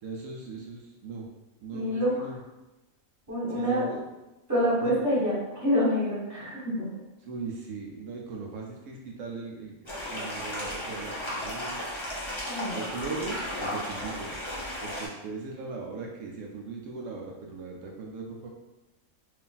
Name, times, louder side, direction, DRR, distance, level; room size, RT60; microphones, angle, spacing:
voice 1, 0.0-1.3 1.6-2.4 3.5-4.0 4.8-5.0 7.2-11.8 12.7-14.3 14.8-18.5, right 4 dB, 80° right, -1 dB, 1.0 m, -39 dB
voice 2, 1.7-2.1 3.3-3.8 4.5-6.9 12.4-12.8, equal, 10° right, -8 dB, 1.4 m, -26 dB
sound 1, 9.9-15.1, left 1 dB, 25° left, 0.8 m, -34 dB
3.2 x 2.5 x 3.8 m, 1.0 s
omnidirectional pair, 1.5 m